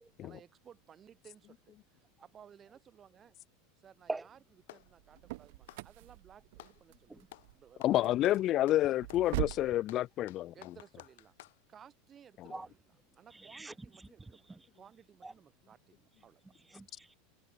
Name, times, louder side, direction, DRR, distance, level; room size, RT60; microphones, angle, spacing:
voice 1, 0.2-3.4 3.8-4.4 4.7-8.3 10.5-11.3 11.7-16.4, right 8 dB, 30° right, 7.8 m, -58 dB
Clapping, 4.0-5.0 5.6-6.8 7.3-7.5 7.8-11.6, left 17 dB, 80° left, 3.8 m, -54 dB
sound 1, 4.8-9.8, right 21 dB, 70° right, 1.6 m, -42 dB
voice 2, 7.8-10.5, left 14 dB, 40° left, 0.7 m, -29 dB
voice 3, 13.3-14.7 15.2-15.3 16.5-17.2, right 2 dB, 10° right, 1.0 m, -44 dB
supercardioid pair, 130°, 0 cm